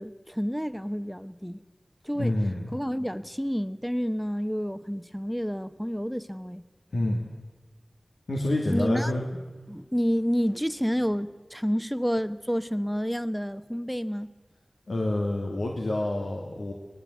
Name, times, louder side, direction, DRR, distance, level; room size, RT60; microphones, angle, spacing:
voice 1, 0.0-1.6 2.0-2.3 2.7-6.6 8.7-9.1 9.7-14.3, equal, ahead, 1.0 m, -29 dB
voice 2, 2.2-2.5 6.9-7.2 8.3-9.2 14.9-16.7, left 1 dB, 90° left, 2.6 m, -27 dB
24.0 x 20.0 x 8.0 m
wide cardioid pair, 60°, 0 cm